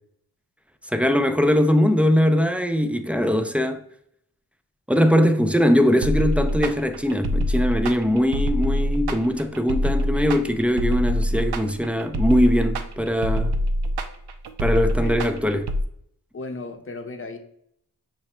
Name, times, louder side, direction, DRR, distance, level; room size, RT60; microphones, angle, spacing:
voice 1, 0.9-3.8 4.9-13.5 14.6-15.7, equal, 5° right, 0.4 m, -21 dB
sound 1, 6.0-15.8, equal, 75° right, 0.5 m, -24 dB
voice 2, 15.0-15.4 16.3-17.4, left 3 dB, 30° left, 0.7 m, -36 dB
5.7 x 2.2 x 4.2 m
cardioid pair, 40°, 39 cm